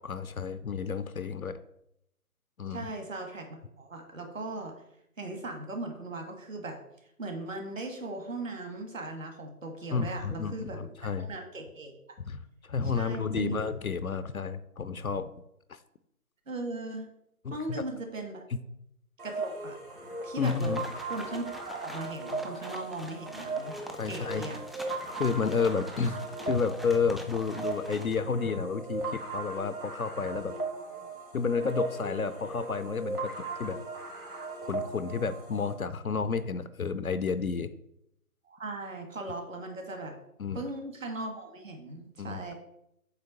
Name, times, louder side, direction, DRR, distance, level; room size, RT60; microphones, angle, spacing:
voice 1, 0.1-1.6 2.6-2.9 9.9-11.3 12.3-15.3 15.7-15.8 17.4-17.9 20.4-20.8 24.0-24.4 25.1-30.5 31.3-33.8 34.6-37.7 40.4-40.6 42.2-42.5, left 5 dB, 70° left, 12 dB, 0.6 m, -31 dB
voice 2, 2.7-4.7 5.2-6.8 7.2-12.0 12.8-13.6 16.5-17.0 17.5-18.5 19.2-19.8 20.2-23.8 24.0-24.6 38.5-40.1 40.5-42.5, right 2 dB, 60° right, 4 dB, 1.6 m, -38 dB
sound 1, 19.2-35.7, right 3 dB, 80° right, 2.6 m, -38 dB
sound 2, 20.4-28.2, equal, ahead, 0.3 m, -45 dB
8.0 x 3.1 x 5.8 m, 0.78 s
figure-of-eight pair, 160°, 44 cm